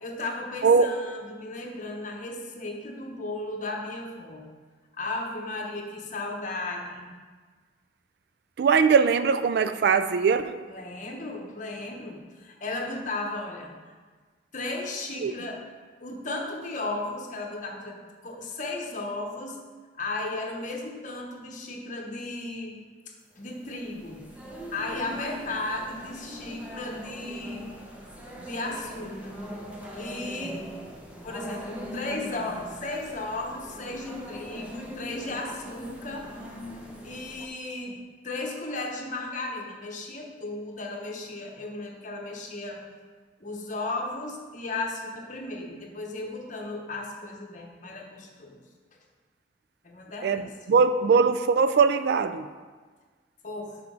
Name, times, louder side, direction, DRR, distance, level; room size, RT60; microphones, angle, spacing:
voice 1, 0.0-4.5 4.9-7.1 10.7-13.9 14.5-15.6 16.0-19.6 20.0-22.8 23.3-24.2 24.7-27.7 28.4-29.4 30.0-30.7 31.2-36.4 37.0-38.0 38.2-42.8 43.4-48.6 49.8-50.5 53.4-53.8, left 2 dB, 40° left, 1 dB, 1.0 m, -35 dB
voice 2, 0.6-0.9 8.6-10.6 15.2-15.3 50.2-52.5, right 5 dB, 55° right, 11 dB, 0.3 m, -21 dB
sound 1, 23.4-37.5, equal, 5° right, 0.9 m, -41 dB
5.9 x 5.1 x 6.3 m, 1.5 s
head